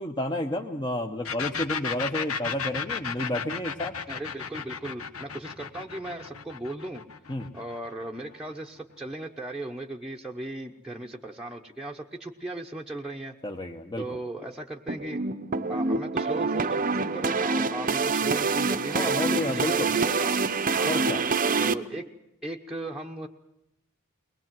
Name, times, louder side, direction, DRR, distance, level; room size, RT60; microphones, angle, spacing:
voice 1, 0.0-4.0 7.3-7.5 13.4-14.0 18.9-19.9 20.9-21.2, left 1 dB, 20° left, 2 dB, 1.1 m, -31 dB
sound 1, 1.2-8.8, left 6 dB, 70° left, 1.4 m, -34 dB
voice 2, 4.1-7.0 7.5-13.3 14.0-15.2 15.7-19.1 19.5-20.4 20.7-21.0 21.6-22.0 22.4-23.3, right 2 dB, 5° right, -1 dB, 1.0 m, -37 dB
sound 2, 14.9-21.7, right 4 dB, 40° right, 0.8 m, -26 dB
22.0 x 20.5 x 7.6 m, 0.88 s
head